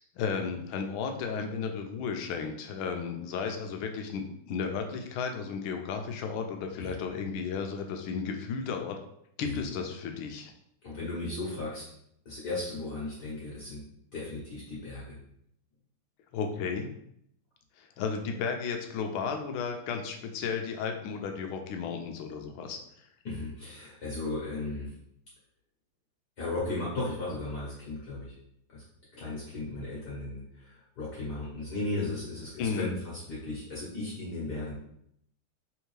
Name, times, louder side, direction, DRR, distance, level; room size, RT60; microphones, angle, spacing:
voice 1, 0.2-9.0 9.4-10.5 16.3-16.9 17.8-23.1 32.6-32.9, left 5 dB, 80° left, 4 dB, 1.4 m, -34 dB
voice 2, 10.8-11.8 12.2-13.8 14.1-15.1 23.2-24.9 26.4-28.3 28.7-28.8 29.1-32.9 33.3-34.7, left 2 dB, 55° left, -6 dB, 1.5 m, -36 dB
3.5 x 3.4 x 3.2 m, 0.73 s
omnidirectional pair, 2.3 m